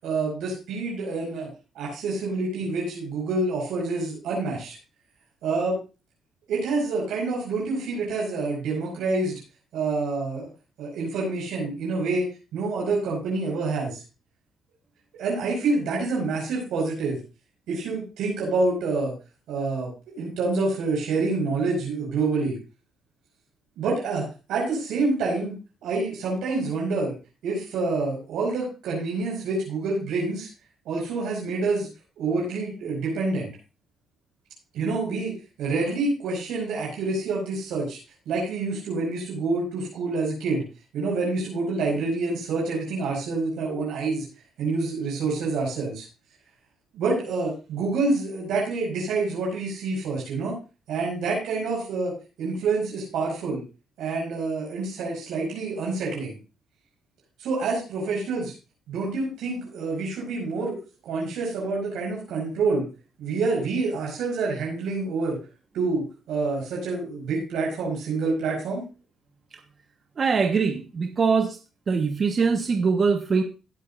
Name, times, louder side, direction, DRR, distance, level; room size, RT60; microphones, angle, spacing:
voice 1, 0.0-1.5 1.8-4.8 5.4-5.8 6.5-9.4 9.7-10.5 10.8-12.3 12.5-14.0 15.1-17.2 17.7-19.1 19.5-19.9 20.2-22.6 23.8-25.6 25.8-27.1 27.4-30.5 30.9-31.9 32.2-33.5 34.7-35.3 35.6-38.0 38.3-40.6 40.9-44.3 44.6-46.1 46.9-50.6 50.9-52.1 52.4-53.6 54.0-56.4 57.4-58.5 58.9-60.8 61.0-62.9 63.2-65.4 65.7-68.8, right 3 dB, 85° right, -3 dB, 5.3 m, -27 dB
voice 2, 70.2-71.6 71.9-73.4, right 5 dB, 45° right, 5 dB, 1.2 m, -22 dB
18.0 x 8.4 x 2.5 m, 0.31 s
cardioid pair, 90°, 0 cm